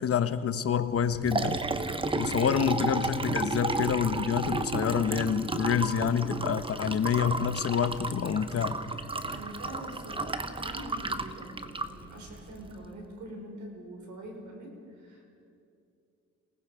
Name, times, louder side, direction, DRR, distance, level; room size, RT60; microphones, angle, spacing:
voice 1, 0.0-1.6 2.2-8.8, left 7 dB, 50° left, 11 dB, 1.1 m, -27 dB
Liquid, 0.9-12.9, right 2 dB, 15° right, 1.0 m, -33 dB
voice 2, 8.9-15.3, right 1 dB, 70° right, 1 dB, 5.3 m, -44 dB
27.5 x 19.0 x 5.0 m, 2.5 s
cardioid pair, 90°, 30 cm